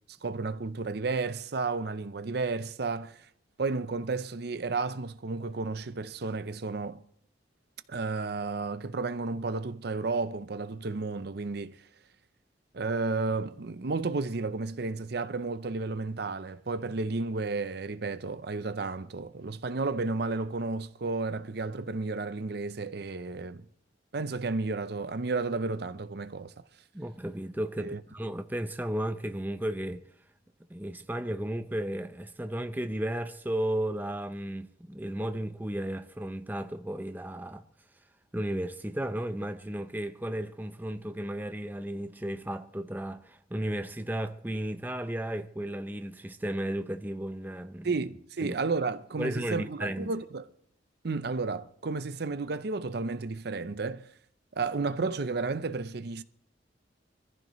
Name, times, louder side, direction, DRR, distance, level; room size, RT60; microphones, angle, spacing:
voice 1, 0.2-3.3 3.6-7.0 7.9-11.8 12.7-23.6 24.1-26.5 27.8-28.0 47.8-50.5 51.0-54.1 54.6-56.2, right 3 dB, 60° right, 0.6 m, -32 dB
voice 2, 26.9-30.0 30.7-37.6 38.3-47.9 48.4-48.6 49.2-50.1, right 1 dB, 10° right, 0.6 m, -34 dB
24.5 x 14.5 x 3.1 m
head